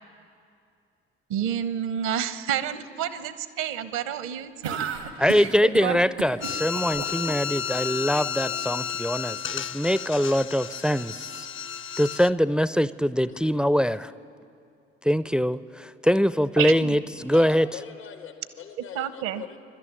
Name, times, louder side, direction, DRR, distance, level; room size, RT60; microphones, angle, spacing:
voice 1, 1.3-4.8 5.8-6.0 16.6-17.0 18.9-19.4, right 9 dB, 65° right, 1.0 m, -29 dB
sound 1, 4.6-7.6, right 7 dB, 85° right, 1.7 m, -33 dB
voice 2, 5.2-11.5 12.0-14.1 15.0-17.7, equal, 5° right, 0.5 m, -23 dB
sound 2, 6.4-12.3, left 8 dB, 40° left, 0.7 m, -32 dB
voice 3, 17.1-19.6, left 8 dB, 85° left, 1.7 m, -42 dB
25.0 x 12.0 x 9.1 m
figure-of-eight pair, 45°, 31 cm